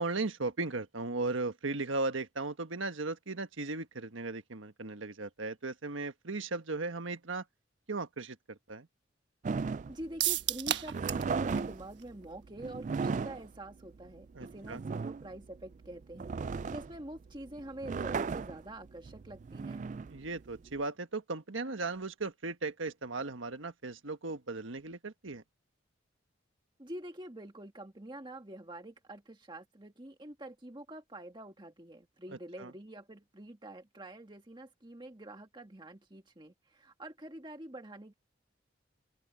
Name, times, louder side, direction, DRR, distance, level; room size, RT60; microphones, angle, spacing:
voice 1, 0.0-7.4 7.9-8.9 14.3-14.8 20.1-25.4 32.6-32.7, right 3 dB, 80° right, 1.4 m, -37 dB
sound 1, 9.4-20.8, right 5 dB, 40° right, 0.3 m, -37 dB
voice 2, 9.9-19.9 26.8-38.1, right 1 dB, 25° right, 1.7 m, -46 dB
sound 2, 10.2-11.3 11.6-11.7 12.0-12.1, right 12 dB, 65° right, 1.3 m, -31 dB
open air
head